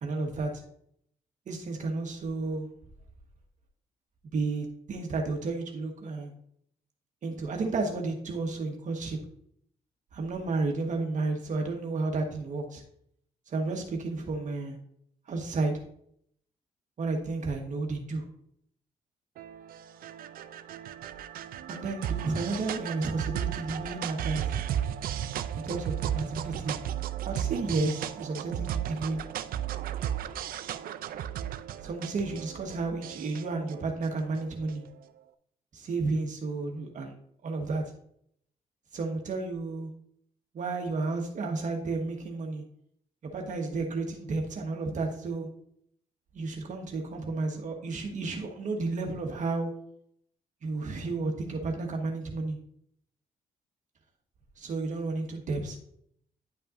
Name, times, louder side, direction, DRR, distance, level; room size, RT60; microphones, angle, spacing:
voice 1, 0.0-0.6 1.5-2.7 4.3-6.3 7.2-9.2 10.1-12.8 13.5-14.8 15.3-15.8 17.0-18.2 21.7-24.5 25.6-26.8 27.2-29.2 31.8-34.8 35.7-37.2 37.4-37.8 38.9-39.9 40.5-42.6 43.2-45.5 46.3-49.7 50.6-52.6 54.6-55.8, right 3 dB, 55° right, 2 dB, 1.3 m, -32 dB
sound 1, 19.4-34.9, right 10 dB, 80° right, 0.5 m, -35 dB
10.5 x 5.5 x 2.5 m, 0.67 s
cardioid pair, 95°, 15 cm